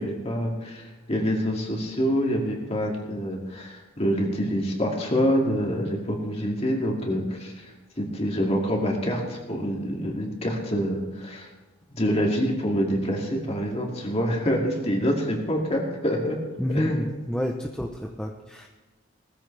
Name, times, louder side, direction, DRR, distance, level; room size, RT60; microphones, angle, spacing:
voice 1, 0.0-11.5 11.9-16.4 16.7-17.1, equal, 30° left, -1 dB, 2.5 m, -26 dB
voice 2, 16.6-18.7, equal, 5° left, 1 dB, 0.8 m, -29 dB
19.5 x 14.5 x 3.4 m, 1.2 s
head